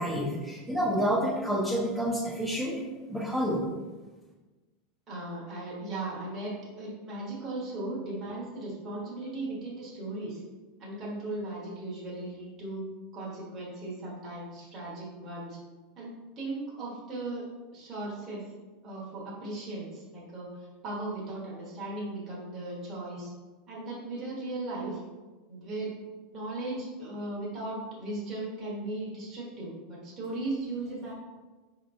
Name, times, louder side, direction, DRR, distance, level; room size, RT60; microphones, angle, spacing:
voice 1, 0.0-2.7 3.1-3.7, equal, 5° right, -9 dB, 0.7 m, -28 dB
voice 2, 5.1-10.4 10.8-12.8 13.1-15.6 16.0-17.5 17.7-18.4 18.8-23.3 23.7-25.0 25.5-25.9 26.3-31.1, right 2 dB, 30° right, -6 dB, 1.2 m, -37 dB
5.1 x 2.9 x 2.6 m, 1.2 s
supercardioid pair, 155°, 0 cm